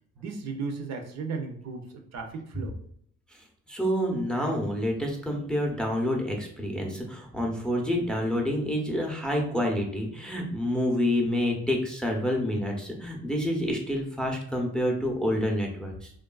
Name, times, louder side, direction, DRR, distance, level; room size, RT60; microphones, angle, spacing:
voice 1, 0.2-1.9 2.1-2.8, right 4 dB, 60° right, 4 dB, 0.6 m, -35 dB
voice 2, 3.7-16.1, equal, 5° left, 0 dB, 0.6 m, -28 dB
3.1 x 2.3 x 2.3 m, 0.67 s
cardioid pair, 90°, 30 cm